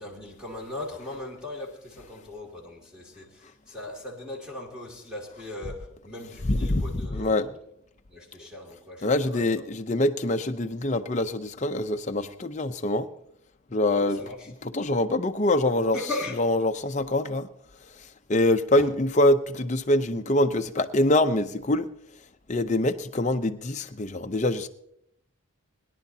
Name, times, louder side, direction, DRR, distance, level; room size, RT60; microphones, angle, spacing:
voice 1, 0.0-7.5 8.1-9.6 13.9-14.5 15.9-16.5 18.8-18.9, left 2 dB, 5° right, 2.5 m, -38 dB
voice 2, 6.5-6.8 7.1-7.5 9.0-13.1 13.7-14.2 14.7-16.0 16.4-17.5 18.3-21.9 22.5-24.7, left 1 dB, 35° left, 0.7 m, -24 dB
22.0 x 11.0 x 2.8 m
head